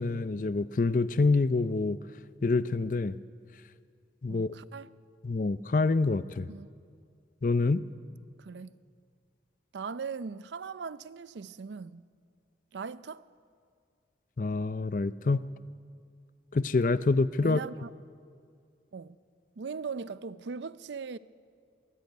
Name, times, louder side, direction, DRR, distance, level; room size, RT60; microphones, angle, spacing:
voice 1, 0.0-2.0 2.4-3.2 4.2-4.5 5.2-6.5 7.4-7.8 14.4-15.4 16.5-17.6, left 3 dB, 45° left, 0.5 m, -26 dB
voice 2, 4.3-4.9 6.5-6.7 8.4-8.8 9.7-12.1 12.7-13.2 17.4-17.9 18.9-19.2 19.6-21.2, right 5 dB, 80° right, 0.5 m, -39 dB
22.0 x 13.5 x 9.4 m
head